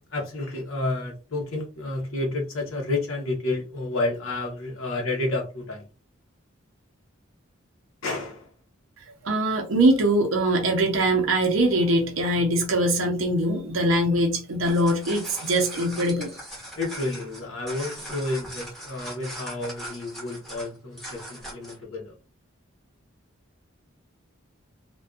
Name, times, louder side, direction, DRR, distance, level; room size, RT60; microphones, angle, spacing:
voice 1, 0.0-5.8 8.0-8.5 16.7-22.2, left 2 dB, 75° left, 0.8 m, -30 dB
voice 2, 9.2-16.3, right 1 dB, 80° right, 0.6 m, -22 dB
sound 1, 14.5-21.8, right 1 dB, ahead, 1.0 m, -39 dB
2.5 x 2.2 x 2.3 m
head